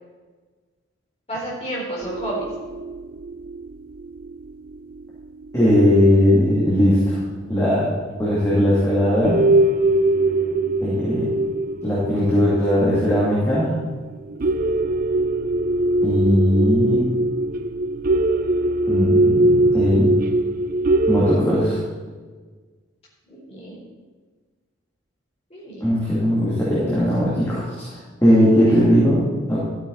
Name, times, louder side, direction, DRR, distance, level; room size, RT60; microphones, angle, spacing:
voice 1, 1.3-2.5 9.9-10.7 23.3-23.8 25.5-25.8 28.3-28.9, right 1 dB, 30° left, -5 dB, 3.8 m, -32 dB
sound 1, 2.0-6.0 6.4-6.5 7.6-7.7 8.2-8.3 8.8-9.0 9.2-21.3, right 2 dB, 45° right, 0.4 m, -22 dB
voice 2, 5.5-7.2 7.5-7.9 8.2-9.4 10.8-11.3 11.8-13.7 16.0-17.0 18.9-20.1 21.1-21.8 25.8-29.2 29.5-29.6, equal, 15° left, -9 dB, 2.6 m, -18 dB
13.5 x 9.0 x 4.1 m, 1.4 s
head